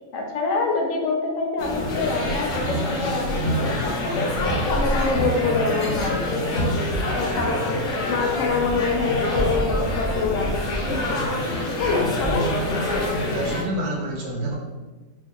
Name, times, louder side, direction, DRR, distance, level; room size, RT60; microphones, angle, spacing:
voice 1, 0.1-6.7 7.1-11.2 11.8-12.5, left 3 dB, 75° left, 1 dB, 0.9 m, -26 dB
sound 1, 1.6-13.6, left 1 dB, 50° left, 0.6 m, -25 dB
voice 2, 13.2-14.6, right 1 dB, 65° right, -1 dB, 0.7 m, -29 dB
2.6 x 2.4 x 3.8 m, 1.3 s
omnidirectional pair, 1.4 m